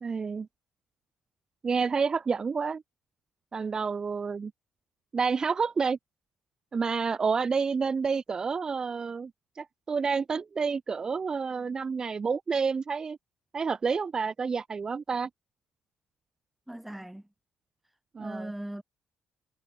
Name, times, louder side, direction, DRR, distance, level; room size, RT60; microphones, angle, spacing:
voice 1, 0.0-0.5 1.6-2.8 3.5-4.5 5.1-6.0 6.7-9.3 9.6-13.2 13.5-15.3 18.1-18.5, right 5 dB, 35° right, 0.5 m, -29 dB
voice 2, 16.7-17.3 18.2-18.8, right 1 dB, 5° right, 1.2 m, -39 dB
hypercardioid pair, 50°, 2 cm